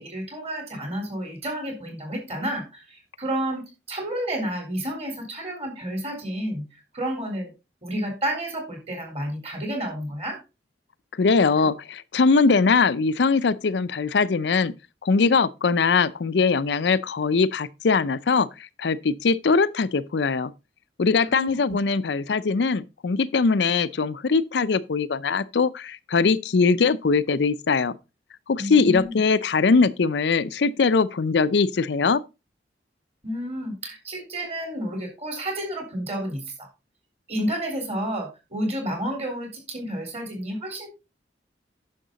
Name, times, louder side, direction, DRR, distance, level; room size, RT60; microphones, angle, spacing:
voice 1, 0.0-6.7 6.9-7.5 7.8-10.4 21.3-21.6 28.6-29.2 33.2-36.7 37.3-40.9, right 1 dB, 35° right, 3.9 m, -30 dB
voice 2, 11.2-14.7 15.0-18.5 18.8-20.5 21.0-28.0 28.5-32.2, left 4 dB, 70° left, 0.5 m, -21 dB
10.0 x 6.6 x 4.0 m
head